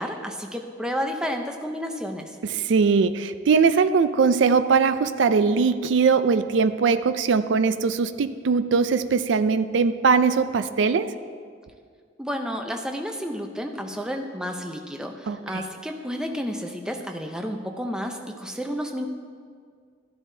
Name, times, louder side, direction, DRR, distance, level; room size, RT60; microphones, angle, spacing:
voice 1, 0.0-2.4 12.2-19.1, equal, 5° right, 3 dB, 0.6 m, -31 dB
voice 2, 2.4-11.1 15.3-15.6, right 5 dB, 75° right, 12 dB, 0.4 m, -21 dB
13.0 x 11.0 x 2.7 m, 2.1 s
head